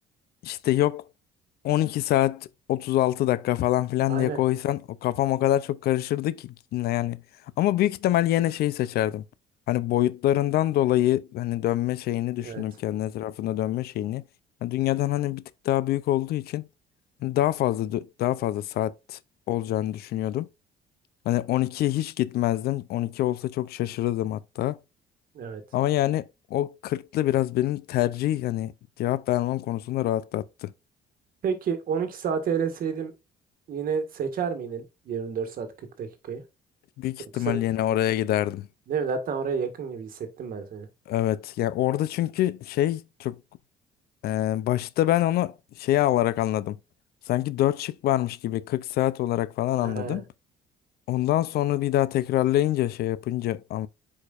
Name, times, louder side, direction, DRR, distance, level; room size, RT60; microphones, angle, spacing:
voice 1, 0.4-1.0 1.6-7.2 7.6-9.2 9.7-14.2 14.6-16.7 17.2-19.2 19.5-20.5 21.3-24.8 25.7-28.7 29.0-30.7 37.0-38.7 41.1-43.4 44.2-46.8 47.3-50.2 51.1-53.9, left 14 dB, 70° left, 0.5 m, -25 dB
voice 2, 4.1-4.4 12.4-12.6 25.3-25.6 31.4-33.1 33.7-35.7 36.0-36.4 37.3-37.6 38.9-40.9 49.8-50.2, right 6 dB, 55° right, 1.6 m, -30 dB
8.3 x 5.0 x 2.5 m
cardioid pair, 110°, 17 cm